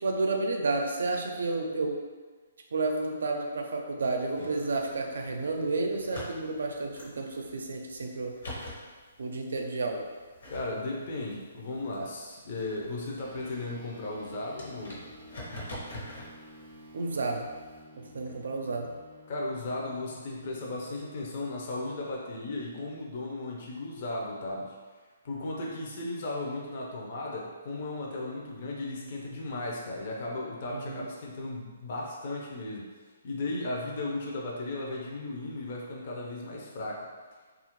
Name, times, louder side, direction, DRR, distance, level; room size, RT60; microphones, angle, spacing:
voice 1, 0.0-2.0 2.7-8.4 9.2-10.0 16.9-17.5 18.0-18.9 30.7-31.1, right 3 dB, 80° right, 2 dB, 0.5 m, -31 dB
Acoustic guitar / Strum, 4.3-9.2, left 1 dB, 90° left, 1.1 m, -54 dB
sound 1, 4.8-17.8, left 1 dB, 70° left, 0.9 m, -47 dB
voice 2, 10.5-15.1 19.3-24.8 25.2-32.9 33.2-37.1, left 2 dB, 45° left, -3 dB, 0.5 m, -36 dB
sound 2, 13.2-22.9, equal, 15° right, 0.4 m, -53 dB
2.8 x 2.4 x 2.9 m, 1.4 s
hypercardioid pair, 160°, 0 cm